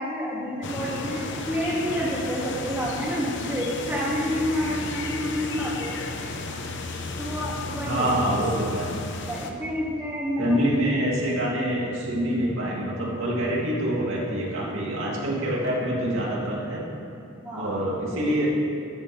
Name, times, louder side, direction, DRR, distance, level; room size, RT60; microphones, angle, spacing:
voice 1, 0.0-6.0 7.2-8.1 9.2-10.7 17.4-17.8, equal, 10° right, -6 dB, 2.3 m, -29 dB
sound 1, 0.6-9.5, left 2 dB, 55° left, 1.0 m, -33 dB
voice 2, 7.8-8.9 10.4-16.8 17.5-18.5, right 1 dB, 65° right, -4 dB, 2.7 m, -26 dB
14.5 x 14.0 x 3.4 m, 2.7 s
head